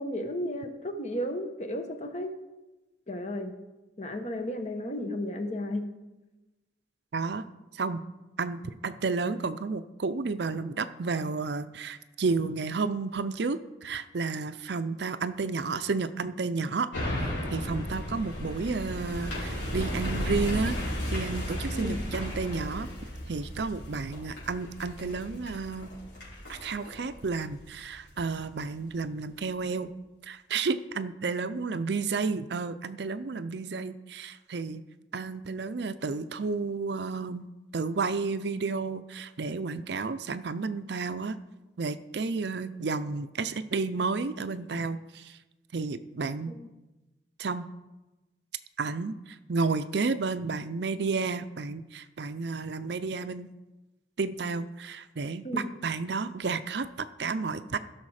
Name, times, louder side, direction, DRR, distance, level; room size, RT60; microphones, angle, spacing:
voice 1, 0.0-2.3 3.1-3.5 4.0-5.9 21.7-22.0 46.5-46.6 55.4-55.7, left 1 dB, 35° left, 6 dB, 1.2 m, -33 dB
voice 2, 7.1-7.5 7.7-8.0 8.4-16.9 17.5-20.8 21.1-22.9 23.3-25.9 26.5-29.9 30.2-34.8 35.1-41.4 41.8-45.4 45.7-46.5 47.4-47.7 48.8-53.5 54.2-57.8, right 4 dB, 65° right, 12 dB, 0.5 m, -31 dB
sound 1, 16.9-28.4 28.8-28.9, equal, 70° left, 4.5 m, -35 dB
16.0 x 6.5 x 4.9 m, 1.1 s
head